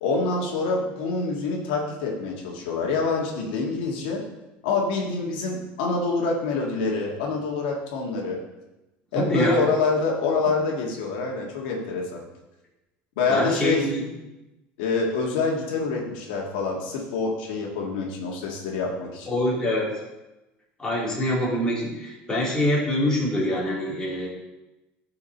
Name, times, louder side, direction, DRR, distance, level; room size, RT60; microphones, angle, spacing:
voice 1, 0.0-4.2 4.6-8.4 9.1-12.2 13.2-13.8 14.8-19.3, left 4 dB, 85° left, -1 dB, 1.7 m, -26 dB
voice 2, 9.1-9.7 13.3-14.1 19.3-19.9 20.8-24.3, left 1 dB, 15° left, -5 dB, 2.8 m, -25 dB
11.0 x 4.9 x 4.1 m, 1.0 s
supercardioid pair, 120°, 5 cm